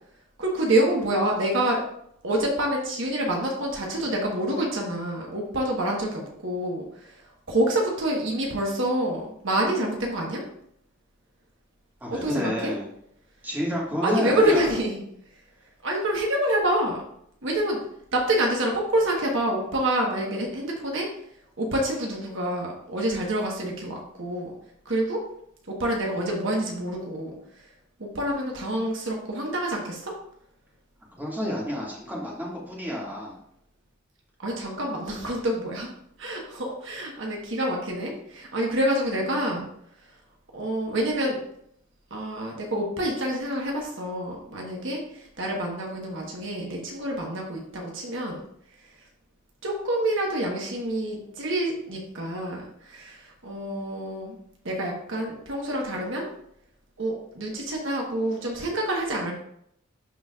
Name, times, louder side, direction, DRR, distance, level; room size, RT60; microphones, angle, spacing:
voice 1, 0.4-1.8 2.2-7.2 7.5-10.4 12.2-12.7 14.0-15.0 15.8-17.0 17.4-17.8 18.1-21.1 21.6-24.5 24.8-25.2 25.7-27.4 28.0-30.1 34.4-35.9 36.2-39.7 40.5-41.4 42.1-48.4 49.6-54.4 54.6-56.3 57.0-59.3, right 1 dB, 65° right, -1 dB, 1.3 m, -27 dB
voice 2, 12.0-12.9 13.4-14.7 31.2-33.4, equal, 10° right, -5 dB, 2.1 m, -29 dB
11.5 x 4.1 x 2.4 m, 0.72 s
head